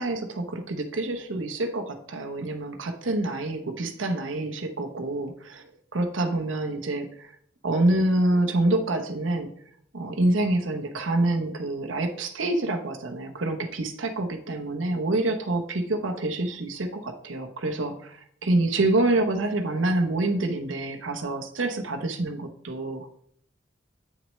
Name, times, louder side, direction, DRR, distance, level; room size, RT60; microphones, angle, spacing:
voice 1, 0.0-5.7 5.9-7.3 7.6-9.5 9.9-23.1, right 2 dB, 85° right, 4 dB, 0.8 m, -27 dB
8.5 x 6.2 x 3.1 m, 0.65 s
head